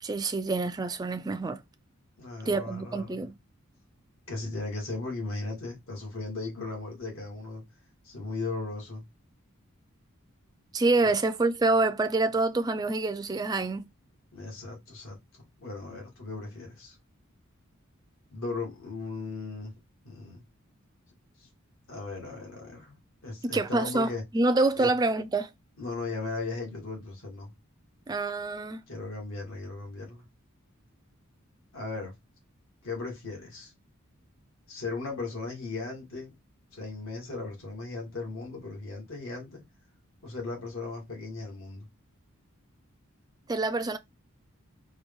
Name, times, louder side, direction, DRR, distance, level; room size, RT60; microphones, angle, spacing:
voice 1, 0.0-1.6 2.5-3.3 10.7-13.9 23.4-25.5 28.1-28.8 43.5-44.0, right 3 dB, 20° right, 0.3 m, -26 dB
voice 2, 2.2-3.3 4.3-7.6 8.0-9.0 11.0-11.1 14.3-15.2 15.6-17.0 18.3-19.7 20.0-20.4 21.4-21.5 21.9-23.0 23.2-24.2 24.8-24.9 25.8-27.5 28.9-30.3 31.7-32.1 32.8-33.7 34.7-36.3 36.7-39.6 40.2-41.9, left 3 dB, 70° left, 1.7 m, -37 dB
4.5 x 2.3 x 3.5 m
head